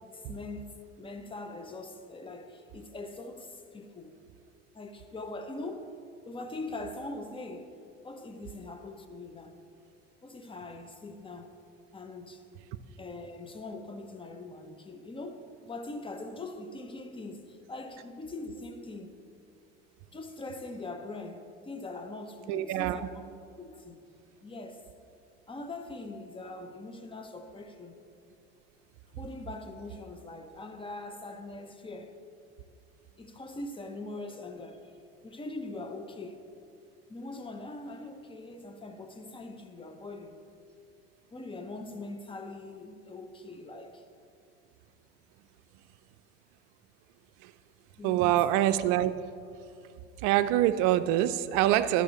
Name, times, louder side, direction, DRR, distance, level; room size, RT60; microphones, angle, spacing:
voice 1, 0.1-4.2 4.7-6.0 6.2-7.7 8.0-9.6 10.2-11.6 11.9-12.5 13.0-19.2 20.1-23.2 23.6-24.0 24.4-24.9 25.5-28.0 29.2-32.2 33.2-35.0 35.2-36.4 37.1-40.4 41.3-44.0 48.0-48.6, left 2 dB, 15° left, 0.8 m, -42 dB
voice 2, 22.5-23.0 47.4-47.5 48.0-49.1 50.2-52.0, right 13 dB, 60° right, 0.5 m, -25 dB
12.0 x 5.9 x 4.1 m
hypercardioid pair, 85°, 34 cm